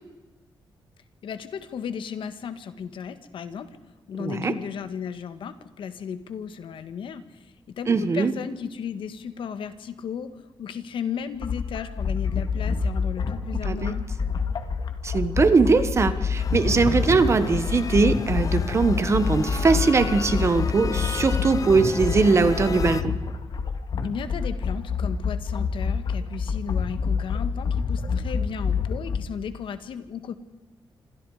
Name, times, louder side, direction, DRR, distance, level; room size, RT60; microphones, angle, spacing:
voice 1, 1.2-3.8 4.1-14.1 24.0-30.3, left 7 dB, 75° left, 10 dB, 1.8 m, -35 dB
voice 2, 4.2-4.5 7.9-8.3 13.6-14.0 15.0-23.1, right 4 dB, 35° right, 11 dB, 1.5 m, -21 dB
sound 1, 11.4-29.2, left 5 dB, 60° left, 2.1 m, -27 dB
sound 2, 16.4-23.0, left 5 dB, 40° left, 0.9 m, -35 dB
28.0 x 26.5 x 5.0 m, 1.2 s
wide cardioid pair, 165°, 9 cm